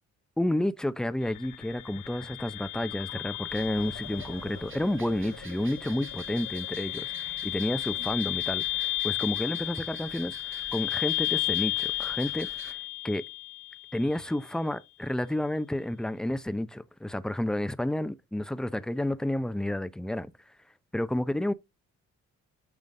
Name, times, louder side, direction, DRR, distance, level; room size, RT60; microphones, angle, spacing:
voice 1, 0.4-12.8 13.0-13.2 13.9-20.3 20.9-21.5, left 1 dB, ahead, 0.6 m, -30 dB
sound 1, 1.2-14.2, left 19 dB, 80° left, 0.7 m, -34 dB
sound 2, 3.5-12.7, right 5 dB, 40° right, 1.4 m, -48 dB
sound 3, 3.8-8.8, right 6 dB, 60° right, 4.9 m, -54 dB
9.1 x 3.8 x 3.7 m
cardioid pair, 90°, 30 cm